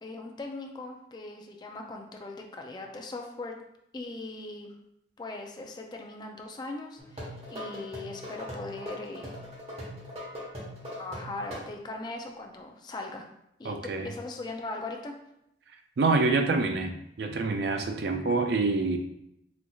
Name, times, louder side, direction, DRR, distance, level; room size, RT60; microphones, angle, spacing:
voice 1, 0.0-3.6 3.9-4.7 5.2-9.4 11.0-13.2 13.6-13.8 14.0-15.1, left 2 dB, 25° left, 2 dB, 0.4 m, -39 dB
sound 1, 7.0-11.6, equal, 35° right, 1.1 m, -40 dB
voice 2, 13.6-14.1 16.0-19.0, right 3 dB, 60° right, 5 dB, 0.4 m, -26 dB
4.3 x 2.7 x 2.3 m, 0.80 s
head